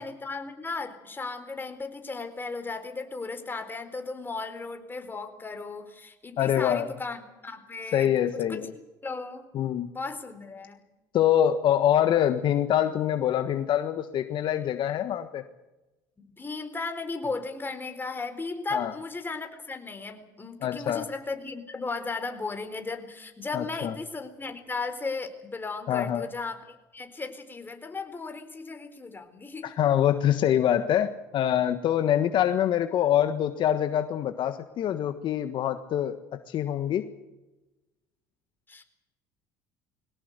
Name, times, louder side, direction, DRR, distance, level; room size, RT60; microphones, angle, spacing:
voice 1, 0.0-8.7 9.0-9.5 9.9-10.8 16.2-29.7 38.7-38.8, left 3 dB, 20° left, 7 dB, 4.2 m, -36 dB
voice 2, 6.4-6.9 7.9-8.7 9.5-9.9 11.1-15.4 18.7-18.9 20.6-21.0 23.5-23.9 25.9-26.3 29.6-36.2 36.5-37.1, left 10 dB, 55° left, 9 dB, 1.5 m, -25 dB
22.5 x 18.0 x 8.2 m, 1.0 s
hypercardioid pair, 75°, 10 cm